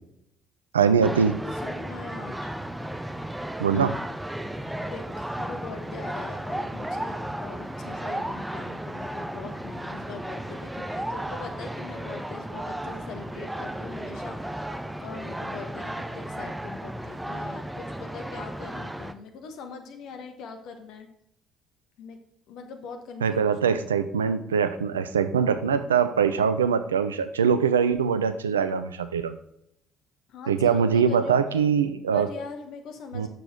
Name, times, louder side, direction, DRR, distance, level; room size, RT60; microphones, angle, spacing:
voice 1, 0.7-1.4 3.6-3.9 23.2-29.3 30.5-32.3 33.1-33.3, right 6 dB, 80° right, 11 dB, 0.5 m, -23 dB
sound 1, 1.0-19.1, right 1 dB, 5° right, 0.8 m, -34 dB
voice 2, 1.5-2.5 4.9-14.4 15.0-21.1 22.0-22.2 22.5-23.8 30.3-31.4 32.1-33.3, left 5 dB, 60° left, 5 dB, 1.4 m, -42 dB
9.2 x 6.9 x 3.8 m, 0.75 s
figure-of-eight pair, 50°, 0 cm